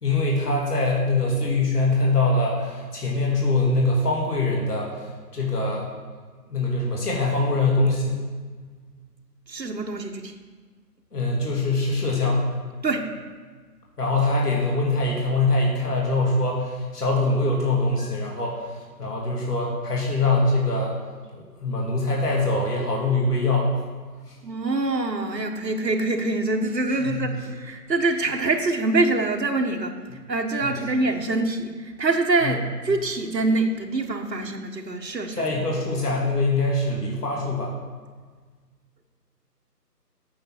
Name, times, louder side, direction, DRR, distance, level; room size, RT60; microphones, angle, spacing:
voice 1, 0.0-5.9 6.5-8.2 11.1-12.5 14.0-20.9 21.3-23.8 24.3-24.4 27.0-27.3 30.6-30.7 32.4-32.6 35.4-37.7, left 2 dB, 70° left, -3 dB, 2.5 m, -23 dB
voice 2, 9.5-10.3 12.8-13.1 24.4-30.0 30.3-35.4, right 2 dB, 90° right, 3 dB, 1.4 m, -25 dB
8.9 x 7.0 x 6.3 m, 1.5 s
figure-of-eight pair, 170°, 49 cm